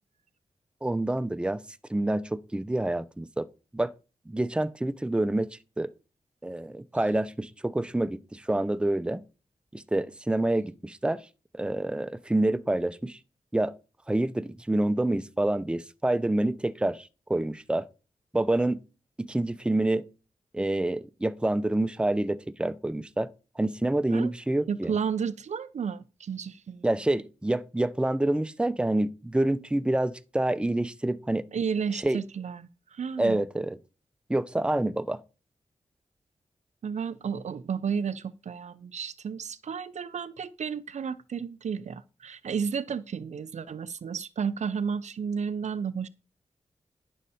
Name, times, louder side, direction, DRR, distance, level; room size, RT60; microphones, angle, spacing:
voice 1, 0.8-1.6 1.9-3.5 3.7-3.9 4.3-5.9 6.4-9.2 9.7-11.3 11.5-13.2 13.5-13.7 14.1-17.9 18.3-18.8 19.2-20.0 20.5-23.3 23.6-25.0 26.8-31.4 31.9-32.2 33.2-33.8 34.3-35.2, right 1 dB, 10° right, 0.6 m, -27 dB
voice 2, 24.7-26.8 31.5-33.4 36.8-46.1, right 6 dB, 70° right, 0.6 m, -32 dB
10.5 x 6.4 x 4.2 m
cardioid pair, 75°, 12 cm